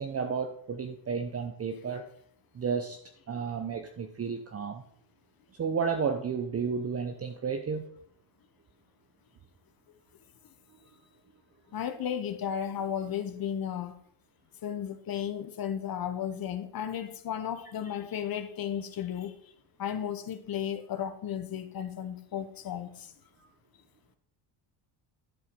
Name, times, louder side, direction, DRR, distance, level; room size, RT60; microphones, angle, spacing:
voice 1, 0.0-2.0 2.5-3.0 3.3-4.8 5.6-7.9, right 6 dB, 30° right, 6 dB, 0.8 m, -32 dB
voice 2, 11.7-14.0 14.6-19.3 19.8-23.1, left 9 dB, 45° left, 9 dB, 1.0 m, -34 dB
11.5 x 4.7 x 5.2 m, 0.66 s
cardioid pair, 95°, 49 cm